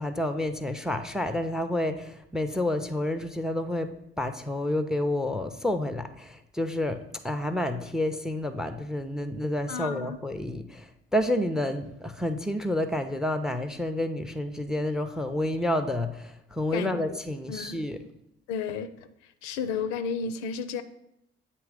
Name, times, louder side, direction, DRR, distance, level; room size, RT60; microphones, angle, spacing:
voice 1, 0.0-3.9 4.2-18.0, left 1 dB, ahead, 9 dB, 0.5 m, -29 dB
voice 2, 9.7-10.2 16.7-17.2 17.5-17.8 18.5-18.9 19.4-20.8, left 6 dB, 65° left, 11 dB, 0.5 m, -32 dB
8.3 x 3.0 x 4.8 m, 0.81 s
figure-of-eight pair, 45°, 30 cm